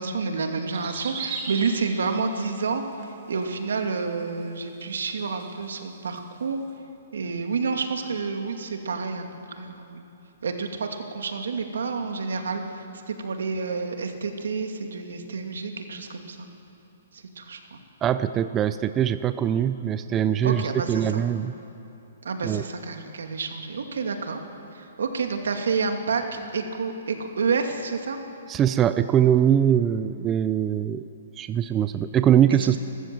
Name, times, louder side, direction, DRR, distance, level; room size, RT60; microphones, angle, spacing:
voice 1, 0.0-6.6 7.1-10.0 10.4-16.5 17.1-17.8 20.4-21.2 22.2-24.4 24.7-28.2 32.6-32.8, right 4 dB, 85° right, 4 dB, 2.5 m, -29 dB
sound 1, 0.7-2.5 2.9-3.4 3.8-3.9 4.7-4.8 5.1-5.2 6.2-6.3, right 5 dB, 35° right, 3.1 m, -35 dB
voice 2, 18.0-21.5 22.4-22.6 28.5-31.0 31.4-32.8, right 10 dB, 15° right, 12 dB, 0.5 m, -22 dB
28.5 x 14.5 x 7.7 m, 2.9 s
hypercardioid pair, 155°, 0 cm